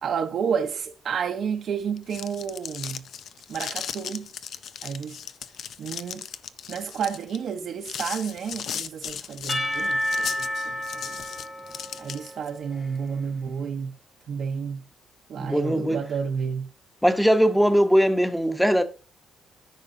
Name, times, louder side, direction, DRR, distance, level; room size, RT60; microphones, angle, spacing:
voice 1, 0.0-3.0 3.5-4.3 4.8-5.2 5.8-6.2 6.7-11.2 12.0-14.0 14.3-14.8 15.3-16.7, right 7 dB, 65° right, 0.8 m, -31 dB
sound 1, 1.9-12.5, left 8 dB, 65° left, 0.5 m, -37 dB
Percussion / Church bell, 9.5-13.1, left 1 dB, 25° left, 1.2 m, -30 dB
voice 2, 15.4-16.0 17.0-18.8, equal, ahead, 0.9 m, -20 dB
13.5 x 5.3 x 2.7 m
cardioid pair, 90°, 0 cm